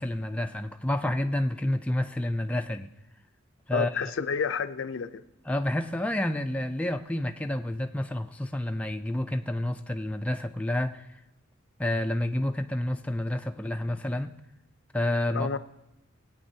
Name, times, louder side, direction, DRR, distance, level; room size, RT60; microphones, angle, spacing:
voice 1, 0.0-2.9 3.7-4.1 5.5-11.1 11.8-14.4 14.9-15.5, left 1 dB, 5° left, 5 dB, 0.3 m, -29 dB
voice 2, 3.7-5.2 15.3-15.6, left 6 dB, 80° left, 12 dB, 0.5 m, -30 dB
19.0 x 8.8 x 2.7 m, 0.91 s
head